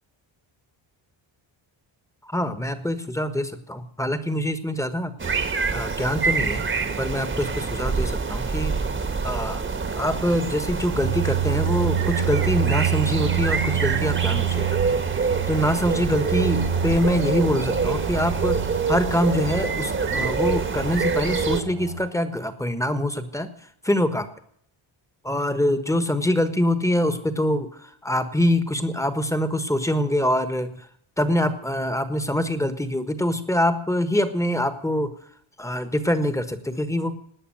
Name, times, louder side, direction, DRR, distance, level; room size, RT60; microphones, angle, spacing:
voice 1, 2.2-5.1 5.7-6.7 7.0-8.8 9.2-9.6 10.0-15.0 15.5-18.6 18.9-23.5 23.8-24.3 25.2-30.9 31.2-35.1 35.6-37.1, left 1 dB, 5° left, 10 dB, 1.4 m, -24 dB
sound 1, 5.2-21.6, right 4 dB, 25° right, 1.4 m, -26 dB
sound 2, 11.0-22.1, right 10 dB, 80° right, 3.4 m, -28 dB
18.0 x 10.0 x 7.8 m, 0.66 s
wide cardioid pair, 150°, 47 cm